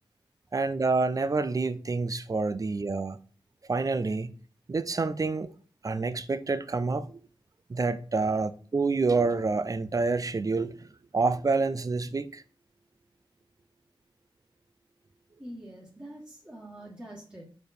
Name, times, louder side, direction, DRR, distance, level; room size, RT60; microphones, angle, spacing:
voice 1, 0.5-3.2 3.7-4.3 4.7-5.5 5.8-7.2 7.7-10.8 11.1-12.4, right 3 dB, 40° right, 0.5 m, -27 dB
voice 2, 15.4-17.5, right 1 dB, 15° right, 1.5 m, -44 dB
5.1 x 4.3 x 4.2 m
wide cardioid pair, 85°, 9 cm